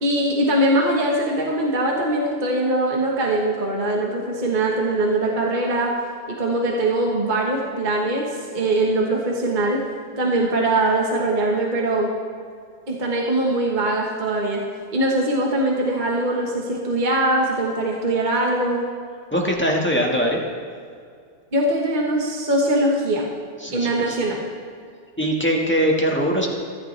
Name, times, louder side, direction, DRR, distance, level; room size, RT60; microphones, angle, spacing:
voice 1, 0.0-6.0 6.3-9.8 10.2-12.1 12.9-14.6 14.9-18.9 21.5-23.3 23.7-24.4, right 1 dB, 30° right, -1 dB, 1.4 m, -22 dB
voice 2, 19.3-20.4 23.6-24.2 25.2-26.5, equal, 5° left, -2 dB, 1.5 m, -21 dB
15.0 x 13.5 x 3.4 m, 2.2 s
omnidirectional pair, 1.7 m